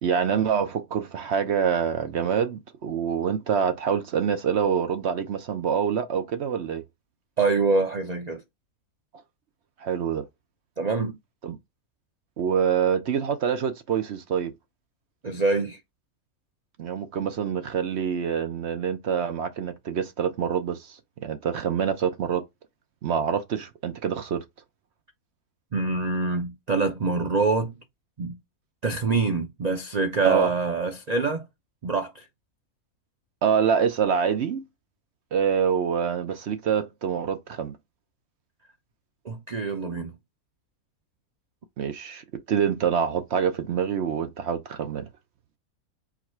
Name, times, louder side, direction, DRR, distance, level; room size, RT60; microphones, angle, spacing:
voice 1, 0.0-6.8 9.8-10.3 11.4-11.6 12.4-14.5 16.8-22.4 23.0-24.4 30.2-30.5 33.4-34.6 35.3-37.7 41.8-45.1, right 7 dB, 60° right, 0.8 m, -26 dB
voice 2, 7.4-8.4 10.8-11.2 15.2-15.8 25.7-27.7 28.2-28.4 28.8-31.5 31.8-32.2 39.2-40.1, right 3 dB, 80° right, 0.3 m, -25 dB
4.7 x 2.3 x 4.3 m
omnidirectional pair, 1.5 m